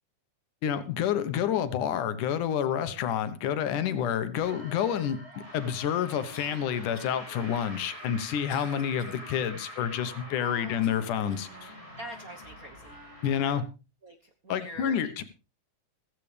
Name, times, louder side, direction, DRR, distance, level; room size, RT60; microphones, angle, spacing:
voice 1, 0.6-5.2 5.5-11.7 13.2-13.7 14.5-15.2, left 9 dB, 85° left, 11 dB, 2.7 m, -29 dB
sound 1, 4.4-13.6, equal, 10° right, 7.4 m, -45 dB
sound 2, 5.3-5.4 6.3-6.6 6.9-7.2 7.6-9.2 9.7-9.8 10.8-11.6 12.1-12.3 13.0-13.1, left 5 dB, 70° left, 4.2 m, -53 dB
voice 2, 10.4-10.8 12.0-13.0 14.0-15.2, equal, 50° right, 3 dB, 1.0 m, -44 dB
15.5 x 15.0 x 3.4 m, 0.31 s
omnidirectional pair, 3.5 m